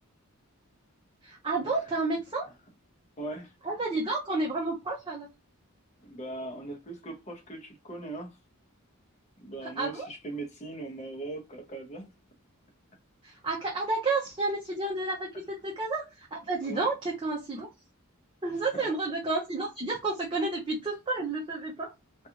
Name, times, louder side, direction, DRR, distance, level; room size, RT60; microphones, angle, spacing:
voice 1, 1.2-2.4 3.6-5.3 9.8-10.1 13.2-17.7 18.4-21.9, right 3 dB, 25° right, 0.5 m, -31 dB
voice 2, 3.2-3.5 6.0-8.4 9.4-12.1 16.6-16.9 18.5-18.9, right 2 dB, 30° left, 0.7 m, -40 dB
2.5 x 2.3 x 2.7 m
head